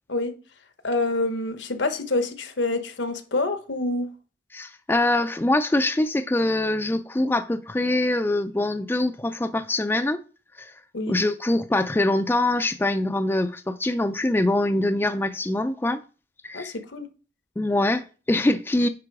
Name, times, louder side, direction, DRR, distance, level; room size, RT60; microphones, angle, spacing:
voice 1, 0.8-4.1 10.9-11.2 16.5-17.1, left 2 dB, 80° left, 0.9 m, -27 dB
voice 2, 4.5-10.2 10.6-10.7 11.1-16.0 16.4-16.7 17.6-18.9, left 2 dB, 10° left, 0.3 m, -24 dB
9.8 x 3.8 x 4.7 m
head